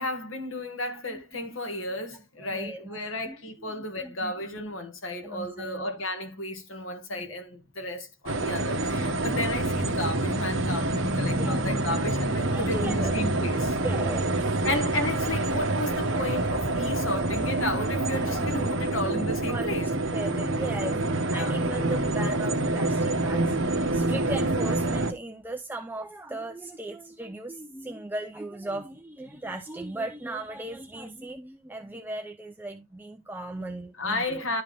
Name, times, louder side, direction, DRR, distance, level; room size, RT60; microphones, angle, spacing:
voice 1, 0.0-13.8 14.6-19.9 21.3-21.5 33.6-34.6, left 1 dB, 75° left, 1.9 m, -33 dB
voice 2, 2.4-3.0 3.3-3.4 3.7-4.6 5.2-5.8 7.1-7.2 10.9-12.0 12.5-13.2 13.8-14.4 18.1-19.0 19.5-19.8 20.1-34.4, right 2 dB, 10° right, 0.5 m, -37 dB
sound 1, 8.3-25.1, right 2 dB, 70° right, 1.2 m, -27 dB
11.5 x 4.8 x 3.4 m
head